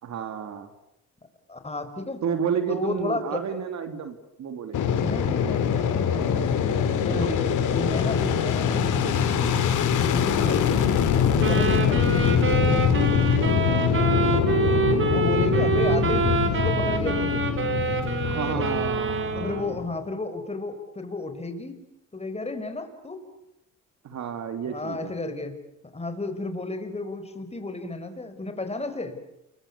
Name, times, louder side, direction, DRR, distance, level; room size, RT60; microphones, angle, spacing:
voice 1, 0.0-0.7 2.2-4.9 7.1-7.3 13.6-14.0 18.2-19.8 24.0-25.1, right 7 dB, 65° right, 8 dB, 3.1 m, -31 dB
voice 2, 1.5-2.2 2.7-3.4 4.9-6.6 7.0-9.6 9.9-10.8 11.2-12.2 14.6-17.5 18.3-18.8 19.4-21.8 22.1-23.2 24.7-25.6 25.9-29.2, left 2 dB, 20° left, 8 dB, 5.3 m, -33 dB
Fixed-wing aircraft airplane, 4.7-19.9, left 7 dB, 80° left, 3.7 m, -23 dB
sound 1, 11.4-19.8, right 5 dB, 40° right, 4.6 m, -26 dB
28.5 x 23.5 x 8.5 m, 0.85 s
cardioid pair, 90°, 30 cm